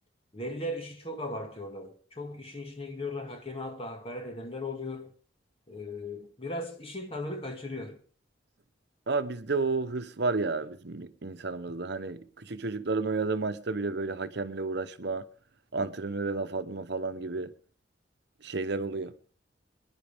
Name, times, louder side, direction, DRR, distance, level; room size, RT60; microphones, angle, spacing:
voice 1, 0.3-5.1 5.7-8.0, left 1 dB, 30° left, 2.0 m, -37 dB
voice 2, 9.1-15.2 15.7-17.5 18.4-19.1, right 3 dB, 65° right, 0.9 m, -31 dB
24.0 x 10.5 x 3.5 m
head